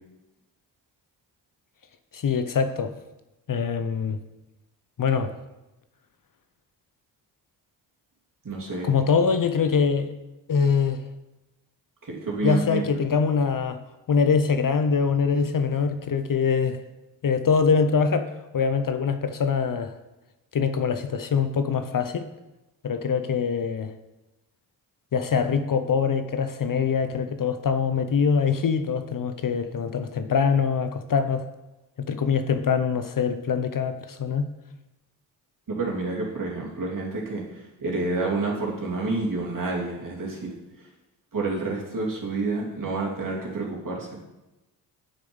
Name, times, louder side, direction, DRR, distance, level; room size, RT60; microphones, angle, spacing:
voice 1, 2.1-2.9 3.5-4.2 5.0-5.3 8.8-10.1 10.5-11.0 12.4-13.8 14.1-16.8 17.2-19.9 20.5-22.3 22.8-23.9 25.1-31.4 32.0-34.5, left 6 dB, 45° left, 9 dB, 0.8 m, -23 dB
voice 2, 8.4-8.9 12.1-12.8 35.7-37.5 37.8-40.5 41.3-44.2, right 3 dB, 45° right, -3 dB, 3.1 m, -29 dB
8.2 x 6.5 x 5.4 m, 1.0 s
supercardioid pair, 40°, 45 cm